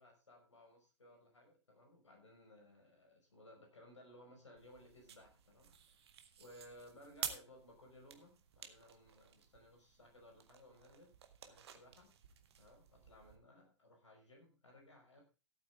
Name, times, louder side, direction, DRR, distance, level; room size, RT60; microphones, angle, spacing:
voice 1, 0.0-6.1 6.4-11.1 11.4-12.1 12.6-15.2, left 1 dB, 75° left, 3 dB, 5.4 m, -61 dB
sound 1, 4.5-13.4, right 8 dB, 60° right, 1.8 m, -52 dB
15.5 x 8.9 x 3.6 m, 0.32 s
figure-of-eight pair, 100°, 15 cm